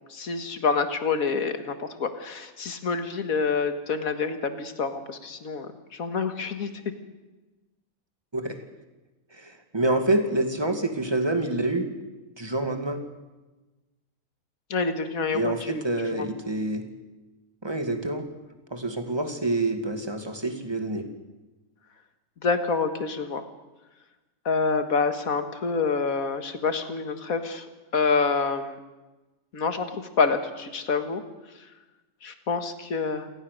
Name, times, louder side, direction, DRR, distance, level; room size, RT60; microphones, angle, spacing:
voice 1, 0.1-6.7 14.7-15.8 16.1-16.3 22.4-23.4 24.5-27.7 27.9-28.8 29.5-31.2 32.2-33.3, left 5 dB, 75° left, 9 dB, 2.1 m, -27 dB
voice 2, 9.3-11.9 12.4-13.0 15.3-16.8 17.6-18.3 18.7-21.1, right 2 dB, 20° right, 6 dB, 2.2 m, -27 dB
28.0 x 17.5 x 6.7 m, 1.1 s
omnidirectional pair, 1.5 m